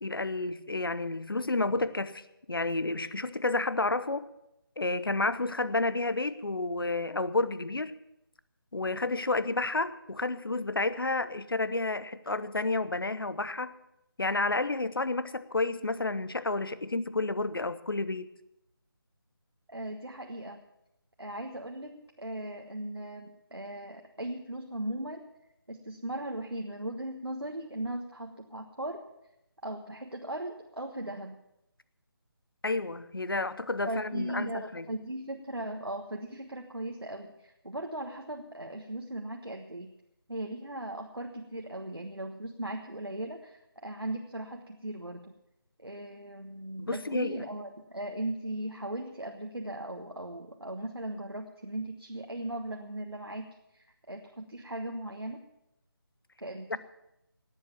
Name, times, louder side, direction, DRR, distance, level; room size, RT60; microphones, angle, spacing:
voice 1, 0.0-4.3 4.8-7.9 8.7-13.7 14.2-18.3 32.6-34.8 46.9-47.4, left 2 dB, 70° left, 15 dB, 0.9 m, -30 dB
voice 2, 19.7-20.6 21.2-25.3 25.7-29.1 29.6-31.4 33.8-39.9 40.3-45.3 45.8-55.4 56.4-56.8, right 1 dB, 85° right, 2 dB, 1.4 m, -38 dB
18.5 x 7.8 x 7.2 m, 0.85 s
figure-of-eight pair, 155°, 13 cm